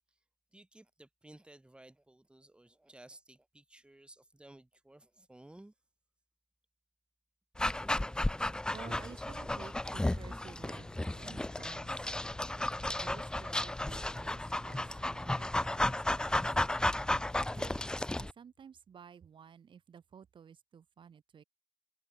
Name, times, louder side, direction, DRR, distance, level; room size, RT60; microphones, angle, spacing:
voice 1, 0.5-5.7, right 1 dB, 10° right, 5.2 m, -56 dB
Dog, 7.6-18.3, left 1 dB, 10° left, 0.5 m, -34 dB
voice 2, 8.7-12.1 12.9-16.4 17.6-17.9 18.2-21.4, right 7 dB, 75° right, 5.2 m, -53 dB
Bowed string instrument, 10.6-18.5, left 7 dB, 85° left, 4.0 m, -60 dB
wide cardioid pair, 140°, 8 cm